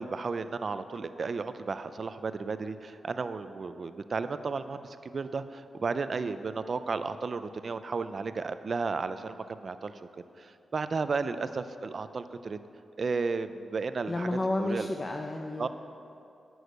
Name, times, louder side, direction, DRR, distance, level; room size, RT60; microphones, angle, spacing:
voice 1, 0.0-9.9 10.4-12.6 13.0-14.3 14.6-14.9 15.6-15.7, right 4 dB, 55° right, 11 dB, 0.5 m, -33 dB
voice 2, 14.1-15.7, left 2 dB, 35° left, 3 dB, 0.6 m, -31 dB
9.7 x 6.3 x 6.6 m, 2.6 s
cardioid pair, 60°, 0 cm